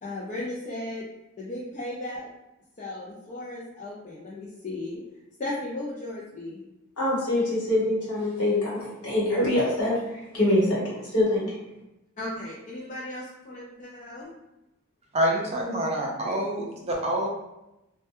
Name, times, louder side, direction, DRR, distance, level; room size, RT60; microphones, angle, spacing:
voice 1, 0.0-1.1 1.4-2.3 2.8-5.0 5.4-6.6 12.2-14.3, left 1 dB, 35° left, -5 dB, 0.4 m, -36 dB
voice 2, 7.0-11.6, left 1 dB, 70° left, -7 dB, 1.2 m, -25 dB
voice 3, 15.1-17.3, right 1 dB, 30° right, -1 dB, 0.4 m, -27 dB
2.1 x 2.1 x 2.8 m, 0.93 s
head